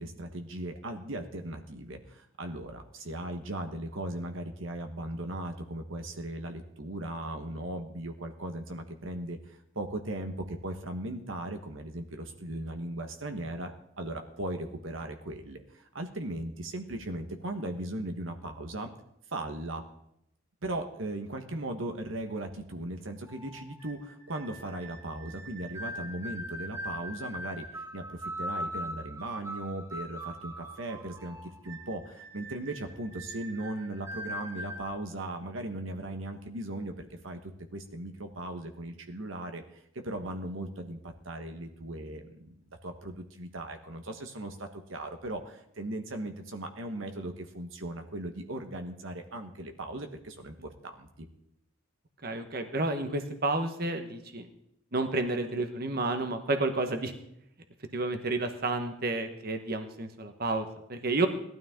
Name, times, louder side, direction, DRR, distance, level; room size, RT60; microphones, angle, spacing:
voice 1, 0.0-13.7 14.0-18.9 19.3-19.8 20.6-39.6 39.9-51.3, right 1 dB, 75° right, 5 dB, 1.4 m, -38 dB
sound 1, 23.3-34.9, equal, 15° right, 1.9 m, -41 dB
voice 2, 52.2-54.5 54.9-57.1 57.9-61.3, right 2 dB, 50° right, 6 dB, 1.3 m, -30 dB
18.0 x 12.5 x 3.8 m, 0.76 s
head